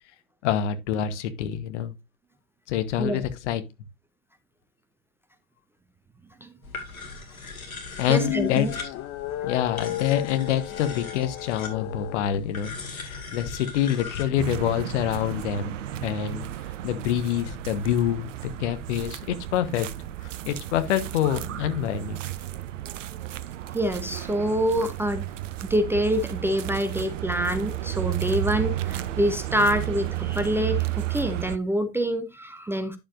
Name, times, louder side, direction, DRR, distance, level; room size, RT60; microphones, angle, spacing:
voice 1, 0.4-1.9 2.7-3.6 8.0-8.7 9.4-15.8 16.0-16.5 16.8-18.3 18.6-19.9 20.5-22.2, left 10 dB, 55° left, 1.2 m, -26 dB
sound 1, 6.6-15.2, left 4 dB, 75° left, 2.5 m, -40 dB
sound 2, 7.9-12.3, left 15 dB, 30° left, 0.7 m, -33 dB
voice 2, 8.1-8.7 9.4-9.5 23.7-25.2 25.6-33.0, equal, 5° right, 0.6 m, -26 dB
sound 3, 14.4-31.6, right 14 dB, 60° right, 0.7 m, -33 dB
10.0 x 6.9 x 2.6 m
figure-of-eight pair, 85°, 42 cm